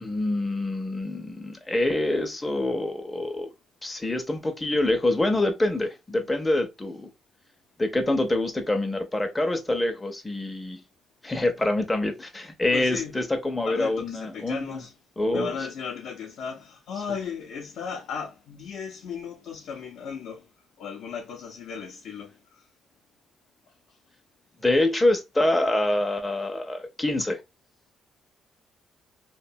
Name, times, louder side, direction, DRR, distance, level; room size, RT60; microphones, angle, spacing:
voice 1, 0.0-3.5 3.8-7.1 7.8-10.8 11.2-14.8 15.2-15.5 24.6-27.4, left 1 dB, 15° left, 0.5 m, -26 dB
voice 2, 12.7-13.2 13.7-14.9 15.3-20.5 20.8-22.7, left 6 dB, 80° left, 0.5 m, -36 dB
2.7 x 2.1 x 2.6 m
cardioid pair, 90°, 0 cm